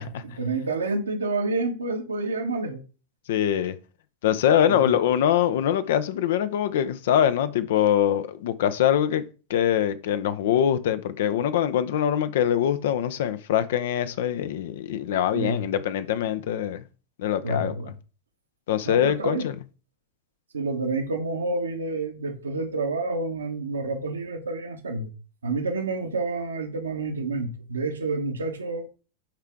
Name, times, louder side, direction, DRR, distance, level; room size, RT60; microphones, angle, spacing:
voice 1, 0.0-2.8 4.7-4.9 15.3-15.7 17.4-17.9 18.8-19.5 20.5-25.1 25.4-28.9, right 3 dB, 70° right, 1.4 m, -29 dB
voice 2, 3.3-3.7 4.2-9.2 9.5-16.8 17.2-17.7 18.7-19.5, left 10 dB, 55° left, 0.7 m, -23 dB
11.5 x 4.6 x 3.6 m
figure-of-eight pair, 90°, 0 cm